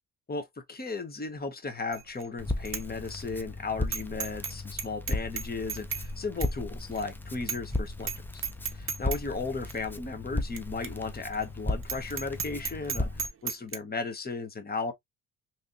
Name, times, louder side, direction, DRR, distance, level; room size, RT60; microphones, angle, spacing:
voice 1, 0.3-8.4 8.7-14.9, left 4 dB, 25° left, 1.1 m, -35 dB
Bicycle bell, 1.9-2.3 2.7-2.8 3.2-3.3 3.9-4.5 4.8-6.1 6.4-6.5 7.0-7.1 7.5-7.7 8.0-8.2 8.4-9.2 9.7-9.8 10.6-10.7 10.8-10.9 11.3-11.4 11.8-13.8, right 6 dB, 35° right, 0.7 m, -34 dB
Crackle, 2.4-13.3, left 2 dB, 5° left, 0.5 m, -36 dB
3.2 x 2.9 x 2.5 m
cardioid pair, 85°, 37 cm